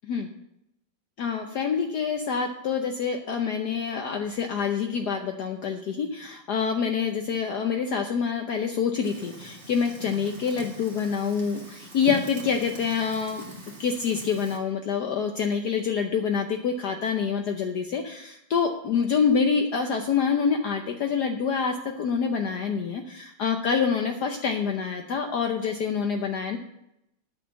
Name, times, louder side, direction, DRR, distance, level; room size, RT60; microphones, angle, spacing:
voice 1, 1.2-13.4 13.8-26.6, left 6 dB, 60° left, 4 dB, 1.2 m, -26 dB
Fire, 9.0-14.6, right 1 dB, 35° right, 2.2 m, -42 dB
9.4 x 6.6 x 8.1 m, 0.83 s
omnidirectional pair, 2.2 m